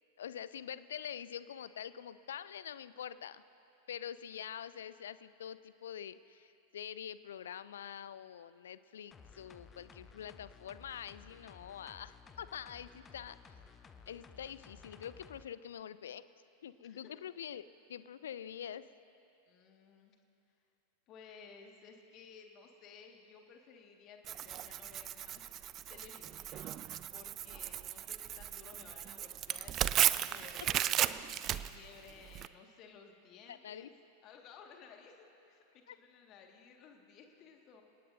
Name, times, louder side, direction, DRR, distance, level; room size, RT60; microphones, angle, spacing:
voice 1, 0.2-3.4 3.9-13.4 14.1-16.2 16.6-18.9 30.8-30.9 33.5-33.9 35.9-36.0, left 9 dB, 65° left, 15 dB, 0.5 m, -45 dB
sound 1, 9.1-15.4 15.8-15.9, left 6 dB, 20° left, 0.8 m, -56 dB
voice 2, 16.8-17.3 19.5-20.2 21.1-26.8 27.1-33.9 34.2-37.8, left 6 dB, 35° left, 3 dB, 1.9 m, -57 dB
Tearing, 24.3-32.5, right 12 dB, 30° right, 0.4 m, -35 dB
27.5 x 18.5 x 2.7 m, 2.9 s
figure-of-eight pair, 90°, 0 cm